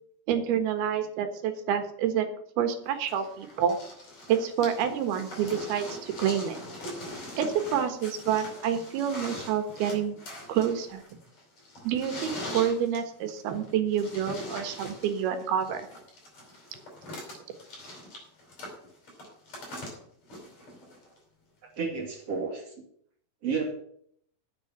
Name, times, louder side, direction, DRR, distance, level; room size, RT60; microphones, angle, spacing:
voice 1, 0.3-2.3 2.6-3.8 4.3-6.6 7.4-10.2 10.5-11.0 11.8-15.9, right 8 dB, 80° right, 7 dB, 3.4 m, -28 dB
sound 1, 3.1-21.2 22.2-22.3, left 1 dB, 45° left, 6.0 m, -42 dB
voice 2, 21.8-22.7 23.4-23.7, right 5 dB, 45° right, 1 dB, 3.2 m, -31 dB
9.5 x 8.0 x 8.6 m, 0.66 s
omnidirectional pair, 4.4 m